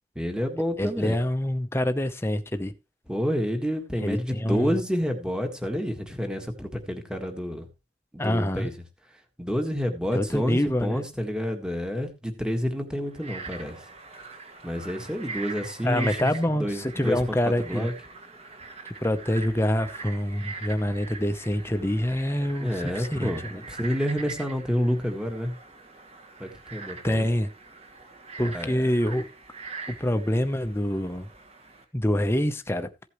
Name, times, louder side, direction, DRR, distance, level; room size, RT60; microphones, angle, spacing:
voice 1, 0.1-1.2 3.1-7.6 8.1-8.7 9.4-13.7 14.6-16.2 16.6-17.9 22.6-25.5 26.4-27.3 28.5-28.8, equal, 5° right, 1.6 m, -29 dB
voice 2, 0.8-2.7 4.0-4.8 8.2-8.7 10.1-11.0 15.8-17.9 19.0-23.6 27.0-27.5 28.4-29.2 29.9-31.3 31.9-32.9, left 1 dB, 15° left, 0.7 m, -26 dB
Frog, 13.1-31.8, right 4 dB, 30° right, 1.7 m, -42 dB
15.0 x 8.2 x 3.1 m
head